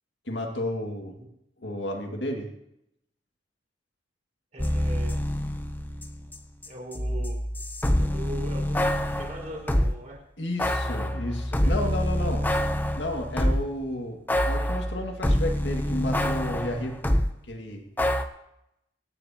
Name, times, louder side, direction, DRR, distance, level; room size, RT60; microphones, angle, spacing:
voice 1, 0.3-1.3 1.6-2.5 10.4-12.5 13.0-14.2 14.4-17.0 17.5-17.8, left 1 dB, 65° left, 3 dB, 2.0 m, -32 dB
voice 2, 4.5-5.2 6.7-7.4 7.9-10.2 11.6-12.6, right 1 dB, 40° right, -3 dB, 4.8 m, -41 dB
sound 1, 4.6-6.4 6.6-10.0 10.6-13.8 14.3-17.3 18.0-18.2, equal, 10° left, 0.7 m, -26 dB
25.5 x 9.9 x 2.9 m, 0.83 s
head